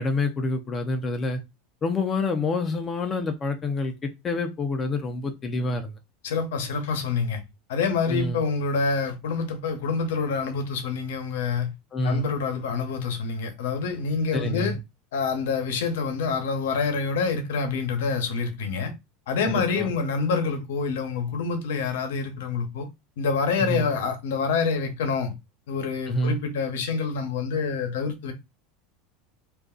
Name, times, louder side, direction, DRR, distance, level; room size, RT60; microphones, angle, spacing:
voice 1, 0.0-1.4 1.8-5.9 8.1-8.4 11.9-12.2 14.3-14.7 19.4-19.9 23.6-23.9 26.1-26.4, left 2 dB, 30° left, 0.5 m, -27 dB
voice 2, 6.2-7.4 7.7-11.7 12.0-14.8 15.1-18.9 19.3-22.9 23.2-25.3 25.7-28.3, left 5 dB, 80° left, 0.8 m, -27 dB
2.5 x 2.2 x 3.7 m
supercardioid pair, 110°, 0 cm